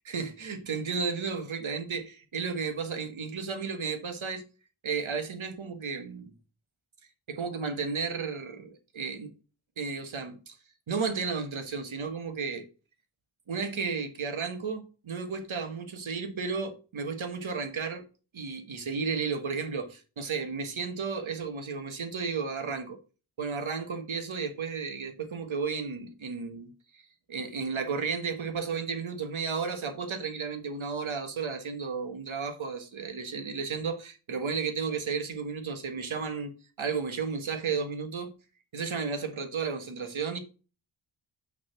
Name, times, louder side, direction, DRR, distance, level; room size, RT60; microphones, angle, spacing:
voice 1, 0.0-4.4 4.8-6.3 7.3-9.3 9.8-10.6 10.9-12.6 13.5-18.0 18.3-23.0 23.4-27.0 27.3-36.5 36.8-38.3 38.7-40.4, right 5 dB, 70° right, 1.5 m, -33 dB
6.2 x 4.1 x 5.8 m
cardioid pair, 45°, 50 cm